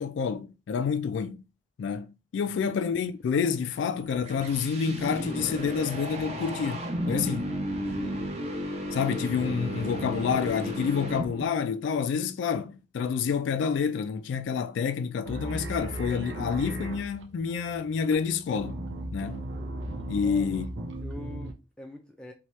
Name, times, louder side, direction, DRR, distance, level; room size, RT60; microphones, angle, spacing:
voice 1, 0.0-1.4 1.8-7.5 8.9-18.8 19.1-19.5 20.1-20.7, left 6 dB, 80° left, 0.3 m, -28 dB
sound 1, 3.8-11.6, equal, 35° right, 0.7 m, -33 dB
voice 2, 7.9-8.3 20.1-20.5 21.0-22.3, left 1 dB, 5° left, 0.4 m, -44 dB
sound 2, 15.2-21.5, right 1 dB, 80° right, 0.6 m, -37 dB
2.8 x 2.2 x 3.1 m
head